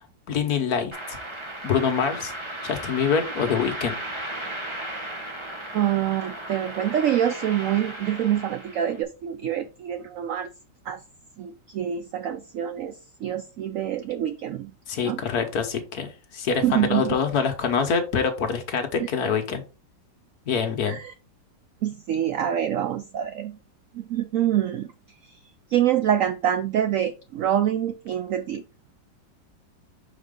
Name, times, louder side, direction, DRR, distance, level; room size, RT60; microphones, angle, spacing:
voice 1, 0.3-1.2 1.6-2.3 2.6-3.9 14.9-19.6 20.5-21.0, left 6 dB, 60° left, 6 dB, 1.4 m, -25 dB
sound 1, 0.9-9.0, right 1 dB, 20° right, 0.9 m, -35 dB
voice 2, 5.7-10.5 10.9-11.0 11.4-13.0 13.2-14.7 15.0-15.2 16.6-17.2 20.8-21.1 21.8-23.6 23.9-24.9 25.7-28.6, right 10 dB, 85° right, 11 dB, 0.7 m, -26 dB
6.3 x 4.5 x 3.6 m, 0.31 s
omnidirectional pair, 2.0 m